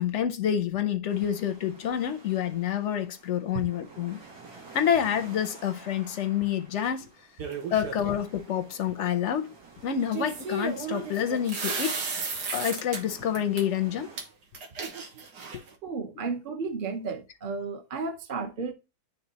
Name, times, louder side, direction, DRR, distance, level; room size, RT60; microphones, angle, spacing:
voice 1, 0.0-4.2 4.7-7.1 7.7-9.5 9.8-12.0 12.5-14.1 15.5-15.6, left 9 dB, 65° left, 0.7 m, -28 dB
sound 1, 1.1-14.2, right 4 dB, 70° right, 2.3 m, -50 dB
sound 2, 7.4-8.1 10.1-13.0 13.4-13.6 14.2-14.3 14.5-15.7, right 4 dB, 85° right, 1.8 m, -34 dB
voice 2, 15.8-18.7, right 4 dB, 40° right, 0.8 m, -33 dB
10.0 x 3.6 x 2.8 m
omnidirectional pair, 1.7 m